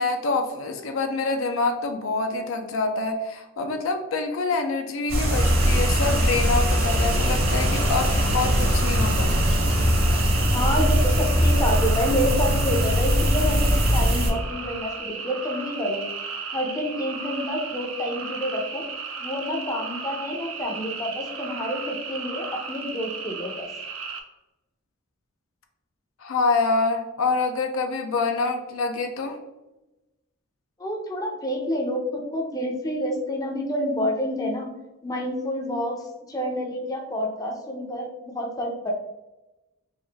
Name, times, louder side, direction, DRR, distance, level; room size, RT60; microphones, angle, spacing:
voice 1, 0.0-9.4 26.2-29.4, left 3 dB, 65° left, 4 dB, 0.5 m, -26 dB
sound 1, 5.1-14.3, equal, 45° right, 1.0 m, -21 dB
sound 2, 5.4-24.2, right 5 dB, 70° right, 0.6 m, -35 dB
voice 2, 10.5-16.0 16.5-18.8 19.2-23.7 30.8-34.7 35.0-38.9, equal, 15° left, 0 dB, 0.5 m, -28 dB
3.8 x 2.5 x 3.4 m, 1.0 s
head